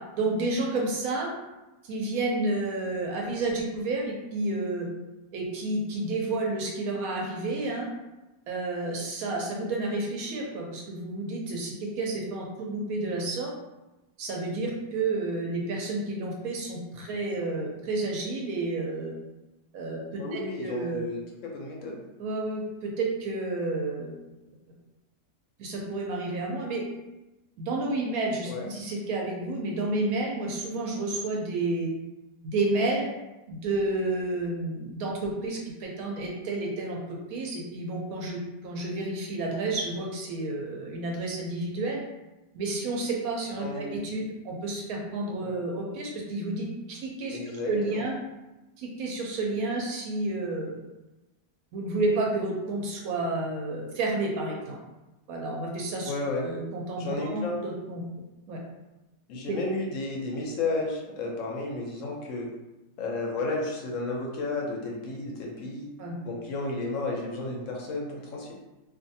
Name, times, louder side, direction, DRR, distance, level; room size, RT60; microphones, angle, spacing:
voice 1, 0.2-1.3 1.8-4.9 5.3-7.9 8.5-13.5 14.2-19.1 19.7-21.1 22.2-24.1 25.6-26.8 27.6-31.9 32.5-33.1 33.5-37.0 37.3-42.0 42.5-47.4 47.7-48.1 48.8-50.7 51.7-54.8 55.3-56.1 56.4-58.0 58.5-58.6 59.5-59.6 66.0-66.1, right 2 dB, 70° right, -1 dB, 0.9 m, -30 dB
voice 2, 20.2-22.0 28.5-28.7 43.6-44.0 45.4-45.6 47.3-48.1 56.0-56.5 57.0-57.6 59.3-62.5 63.0-65.9 66.2-68.5, left 2 dB, 65° left, -1 dB, 0.8 m, -32 dB
2.5 x 2.4 x 2.6 m, 1.0 s
omnidirectional pair, 1.8 m